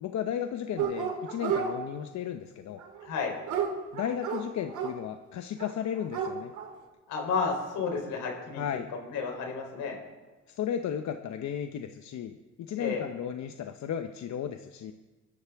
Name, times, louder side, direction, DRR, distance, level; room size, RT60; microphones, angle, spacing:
voice 1, 0.0-2.8 3.9-6.5 8.5-8.9 10.5-14.9, left 9 dB, 65° left, 7 dB, 0.8 m, -34 dB
Dog, 0.8-1.7 2.8-4.9 5.6-5.7 6.0-6.7, right 7 dB, 75° right, 2.3 m, -31 dB
voice 2, 3.0-3.3 7.1-8.6 8.9-10.0 12.8-13.0, left 5 dB, 85° left, 2 dB, 3.6 m, -31 dB
22.5 x 12.0 x 3.5 m, 1.2 s
cardioid pair, 90°, 30 cm